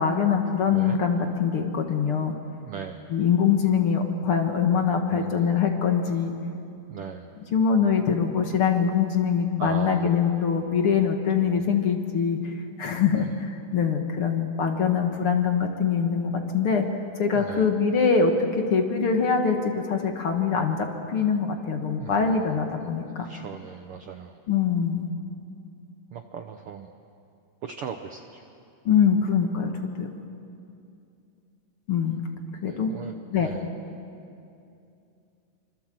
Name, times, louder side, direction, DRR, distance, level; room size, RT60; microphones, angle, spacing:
voice 1, 0.0-2.4 3.1-6.3 7.5-16.9 17.2-23.3 24.5-25.1 28.9-30.1 31.9-32.2 32.6-32.9 33.3-33.5, left 6 dB, 50° left, 4 dB, 2.1 m, -23 dB
voice 2, 2.6-3.1 5.1-5.6 6.9-7.3 9.6-10.1 11.5-11.7 13.1-13.3 17.3-17.7 22.0-22.6 23.2-24.4 26.1-26.9 27.6-28.4 32.7-33.7, right 8 dB, 70° right, 6 dB, 1.4 m, -38 dB
25.5 x 25.5 x 7.7 m, 2.6 s
omnidirectional pair, 3.7 m